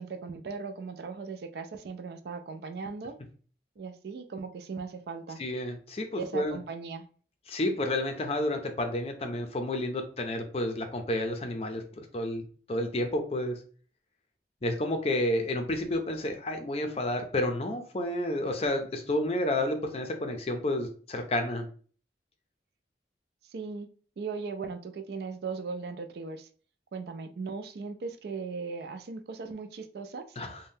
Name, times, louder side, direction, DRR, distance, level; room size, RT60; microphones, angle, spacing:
voice 1, 0.0-3.1 3.8-5.4 6.2-7.1 23.4-23.9 24.2-26.5 26.9-30.4, right 4 dB, 60° right, 8 dB, 0.3 m, -38 dB
voice 2, 5.4-6.6 7.5-12.4 12.7-13.6 14.6-21.7 30.4-30.6, left 1 dB, 35° left, 5 dB, 0.5 m, -30 dB
3.5 x 2.1 x 2.6 m, 0.42 s
head